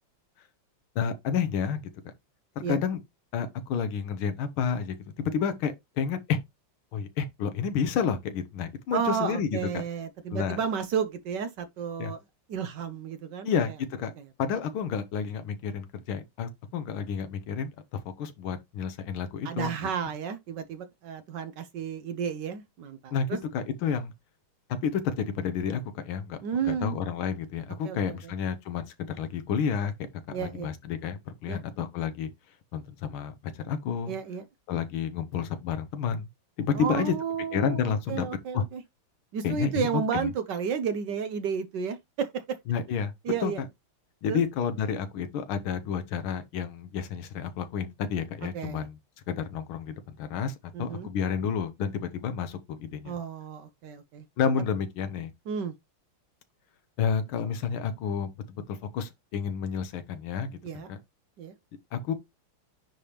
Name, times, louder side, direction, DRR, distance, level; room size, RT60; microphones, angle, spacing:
voice 1, 0.9-1.8 2.7-3.0 3.3-6.4 6.9-9.8 10.3-10.6 12.0-12.1 13.4-14.1 14.4-17.7 18.0-19.7 23.1-24.1 24.8-26.4 26.7-29.9 30.4-32.3 32.7-34.2 34.7-36.3 36.6-37.1 37.5-38.2 38.5-38.6 39.4-40.3 42.7-43.1 43.4-43.5 44.2-49.0 49.3-53.1 54.4-55.3 57.0-61.0 61.9-62.1, left 7 dB, 75° left, 1.7 m, -30 dB
voice 2, 8.9-12.2 12.5-13.6 19.4-23.4 26.4-27.0 27.8-28.3 30.3-30.7 31.5-31.6 34.1-34.4 36.7-38.8 39.3-42.6 43.2-43.6 44.3-44.4 48.5-48.9 50.7-51.1 53.0-54.2 55.5-55.7 60.6-60.9 61.4-61.5, right 7 dB, 65° right, 1.2 m, -32 dB
10.0 x 3.4 x 2.9 m
omnidirectional pair, 2.3 m